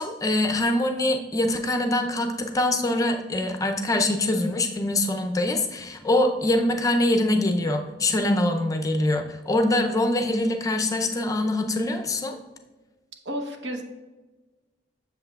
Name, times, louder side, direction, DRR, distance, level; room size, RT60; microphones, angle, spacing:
voice 1, 0.0-12.4, left 1 dB, 20° left, 5 dB, 0.5 m, -24 dB
voice 2, 13.2-13.8, equal, 75° right, 2 dB, 1.0 m, -31 dB
7.8 x 6.9 x 2.3 m, 1.2 s
head